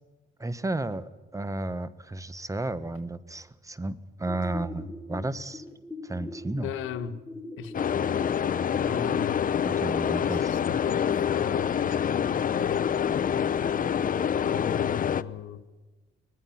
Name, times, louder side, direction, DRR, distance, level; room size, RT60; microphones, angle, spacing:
voice 1, 0.4-5.6 6.0-6.7 9.6-10.5, right 2 dB, 15° right, 15 dB, 1.2 m, -33 dB
sound 1, 4.3-9.3, left 3 dB, 10° left, 1.7 m, -41 dB
voice 2, 6.6-7.2 7.6-7.7 8.8-9.5 10.2-12.9 14.4-15.6, left 8 dB, 90° left, 9 dB, 1.4 m, -37 dB
sound 2, 7.7-15.2, left 8 dB, 45° left, 0.7 m, -26 dB
25.0 x 19.5 x 5.8 m, 1.2 s
cardioid pair, 90°, 20 cm